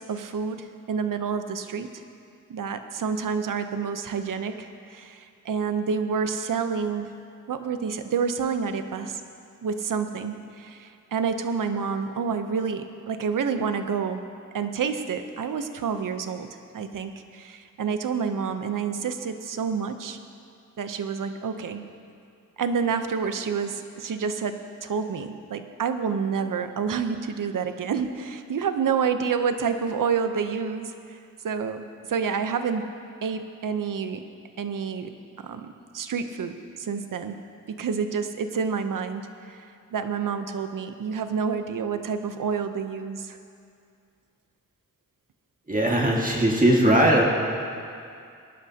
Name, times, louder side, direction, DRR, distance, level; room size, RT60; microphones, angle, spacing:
voice 1, 0.0-1.9 2.5-7.1 7.5-9.2 9.6-14.2 14.5-16.5 16.7-20.2 20.8-21.9 22.6-31.2 31.4-32.9 33.2-34.2 34.6-35.1 35.4-37.4 37.7-39.7 39.9-43.4, right 6 dB, 75° right, 8 dB, 0.8 m, -28 dB
voice 2, 45.7-47.2, right 1 dB, 25° right, -2 dB, 1.9 m, -19 dB
20.0 x 11.5 x 2.9 m, 2.4 s
cardioid pair, 45°, 32 cm